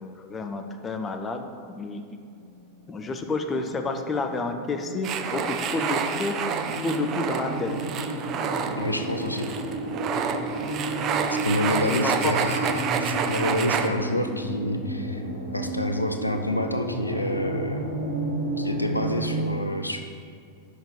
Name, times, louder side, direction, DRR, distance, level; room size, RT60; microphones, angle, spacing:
voice 1, 0.0-2.2 2.9-6.4 6.8-7.8 11.9-12.3, left 3 dB, 20° left, 5 dB, 0.7 m, -30 dB
sound 1, 2.5-19.5, right 1 dB, 70° right, 1.9 m, -32 dB
sound 2, 5.0-13.9, right 7 dB, 35° right, 0.6 m, -29 dB
voice 2, 8.8-9.5 11.4-15.2 15.5-17.8 18.6-20.0, left 1 dB, 85° left, 5 dB, 0.5 m, -28 dB
6.5 x 6.0 x 7.0 m, 2.3 s
figure-of-eight pair, 90°, 0 cm